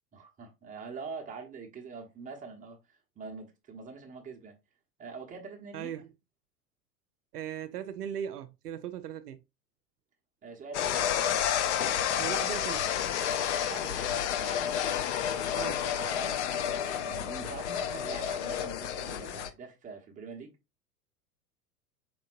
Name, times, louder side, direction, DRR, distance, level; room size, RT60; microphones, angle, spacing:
voice 1, 0.1-4.6 5.0-5.9 10.4-11.4 13.5-14.8 15.3-20.5, right 4 dB, 15° right, 0.9 m, -44 dB
voice 2, 5.7-6.1 7.3-9.4 12.2-12.9 15.5-15.9, right 9 dB, 75° right, 0.5 m, -38 dB
sound 1, 10.7-19.5, left 9 dB, 45° left, 0.6 m, -30 dB
4.6 x 3.7 x 2.4 m
figure-of-eight pair, 90°, 48 cm